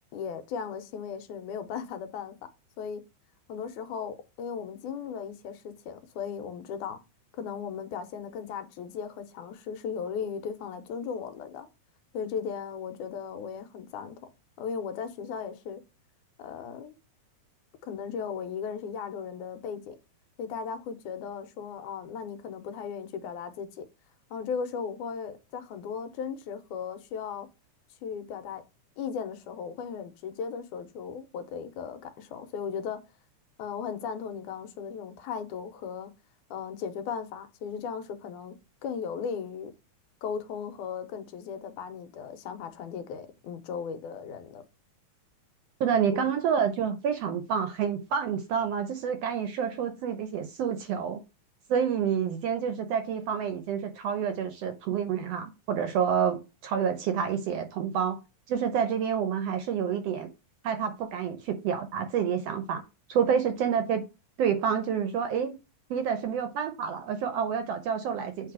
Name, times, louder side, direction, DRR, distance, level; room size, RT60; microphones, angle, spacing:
voice 1, 0.1-2.4 2.8-3.0 3.5-7.0 7.3-11.7 12.1-14.2 14.6-15.8 16.4-17.0 17.8-20.0 20.4-23.8 24.3-27.5 28.0-28.6 29.0-33.0 33.6-36.1 36.5-38.6 38.8-39.7 40.2-44.6 46.1-46.3, left 6 dB, 90° left, 2.3 m, -36 dB
voice 2, 45.8-51.2 51.7-58.2 58.5-60.3 60.6-62.8 63.1-64.0 64.4-65.5 65.9-68.5, right 7 dB, 70° right, 1.5 m, -28 dB
8.3 x 3.4 x 4.7 m
omnidirectional pair, 3.4 m